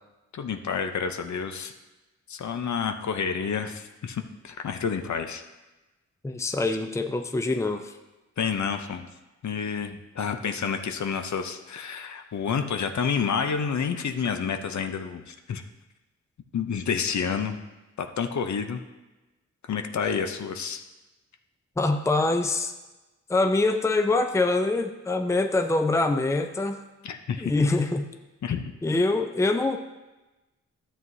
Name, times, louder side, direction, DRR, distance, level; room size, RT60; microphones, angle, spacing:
voice 1, 0.3-1.7 2.3-5.4 8.4-9.1 9.4-15.6 16.5-17.6 18.0-18.8 19.7-20.8 27.0-27.5 28.4-28.6, left 6 dB, 70° left, 6 dB, 0.8 m, -29 dB
voice 2, 6.2-7.9 21.8-22.7 23.3-26.8 27.4-28.1 28.8-29.8, left 2 dB, 10° left, 6 dB, 0.6 m, -24 dB
12.5 x 7.6 x 2.7 m, 1.1 s
cardioid pair, 80°, 30 cm